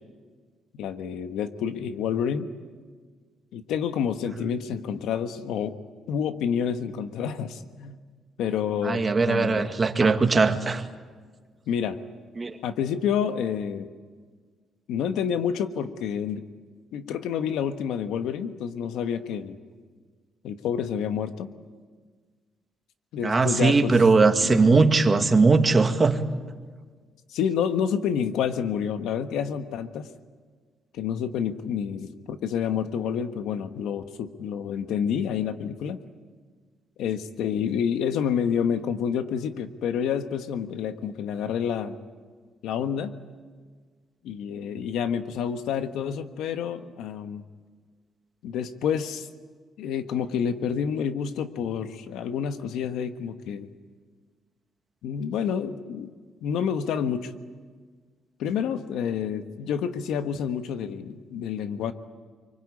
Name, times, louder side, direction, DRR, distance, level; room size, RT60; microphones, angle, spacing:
voice 1, 0.7-2.5 3.5-5.8 6.1-8.0 8.4-9.7 11.7-12.0 12.6-13.9 14.9-16.4 16.9-19.6 20.4-21.5 23.1-24.0 24.4-24.8 27.3-30.1 30.9-36.0 37.0-42.0 42.6-43.1 44.2-47.4 48.4-49.3 49.8-53.7 55.0-56.1 56.4-57.3 58.4-61.9, left 8 dB, 85° left, 1.3 m, -28 dB
voice 2, 8.8-10.8 12.4-12.6 23.2-26.2, right 4 dB, 30° right, 2.0 m, -20 dB
25.0 x 24.0 x 8.6 m
cardioid pair, 90°, 0 cm